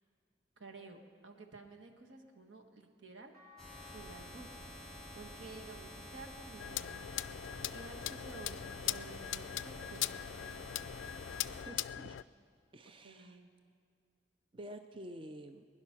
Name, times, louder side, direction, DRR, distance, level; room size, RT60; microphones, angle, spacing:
voice 1, 0.6-3.7 3.9-7.0 7.7-10.2 12.8-13.5, right 3 dB, 85° right, 3 dB, 1.4 m, -52 dB
sound 1, 3.3-9.6 10.2-11.6 13.0-13.1, left 8 dB, 50° right, 2.1 m, -62 dB
sound 2, 3.6-11.6, left 1 dB, ahead, 4.2 m, -50 dB
sound 3, 6.6-12.2, left 13 dB, 85° left, 0.3 m, -40 dB
voice 2, 11.6-12.2 12.7-13.4 14.5-15.7, right 1 dB, 25° right, 8 dB, 0.4 m, -49 dB
20.5 x 11.0 x 5.9 m, 2.2 s
head